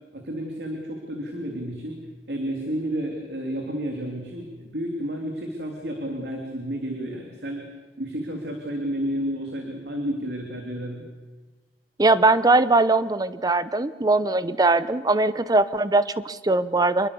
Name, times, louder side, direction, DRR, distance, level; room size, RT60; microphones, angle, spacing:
voice 1, 0.1-2.0 2.3-7.7 8.0-11.0, equal, 65° right, 1 dB, 3.2 m, -31 dB
voice 2, 12.0-17.1, right 2 dB, 20° right, 14 dB, 0.8 m, -20 dB
26.5 x 22.0 x 7.1 m, 1.3 s
head